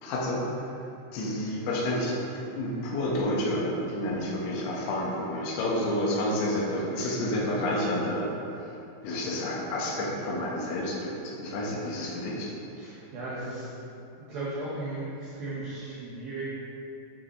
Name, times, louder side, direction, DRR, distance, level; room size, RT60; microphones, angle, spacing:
voice 1, 0.0-0.7 1.1-8.7 9.0-12.5, left 1 dB, 80° left, -3 dB, 3.8 m, -30 dB
voice 2, 12.8-13.7 14.3-16.5, right 2 dB, 75° right, -8 dB, 2.2 m, -36 dB
12.5 x 6.6 x 3.1 m, 2.9 s
omnidirectional pair, 5.9 m